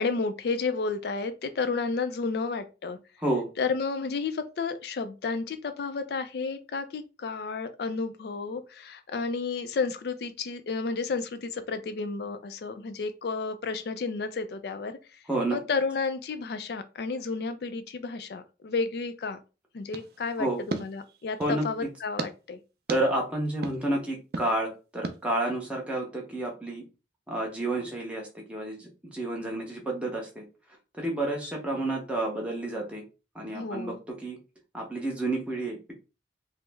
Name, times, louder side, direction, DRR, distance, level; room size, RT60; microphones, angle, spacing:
voice 1, 0.0-3.0 3.6-15.2 15.5-19.4 19.7-22.6 33.5-34.0, left 4 dB, 60° left, 0.4 m, -32 dB
voice 2, 15.3-15.6 20.4-20.6 21.4-21.6 22.9-26.8 27.3-30.4 30.9-33.0 33.3-34.4 34.7-35.9, right 1 dB, 5° right, 0.8 m, -30 dB
sound 1, 19.9-21.6 22.2-22.3 22.9-23.0 23.6-23.8 24.3-24.5 25.0-25.2, right 3 dB, 55° right, 0.4 m, -36 dB
3.0 x 2.0 x 3.3 m
head